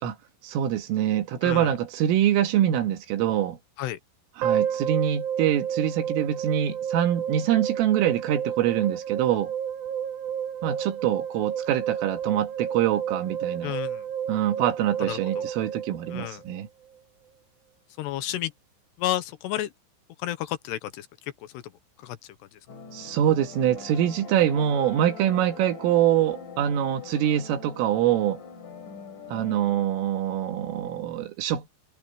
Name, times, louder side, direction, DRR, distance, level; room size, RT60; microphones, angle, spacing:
voice 1, 0.4-3.6 4.4-9.5 10.6-13.8 14.3-16.7 22.9-28.4 29.3-31.7, right 11 dB, 80° right, 4.5 m, -24 dB
voice 2, 1.4-1.7 3.8-4.0 13.6-14.0 15.0-15.5 16.1-16.4 18.0-18.5 19.0-19.7 20.2-21.1 21.5-21.6 22.0-22.2 22.5-22.6, left 14 dB, 70° left, 2.8 m, -31 dB
sound 1, 4.4-16.6, right 8 dB, 60° right, 3.0 m, -31 dB
sound 2, 22.7-29.9, left 6 dB, 45° left, 5.0 m, -43 dB
omnidirectional pair, 5.8 m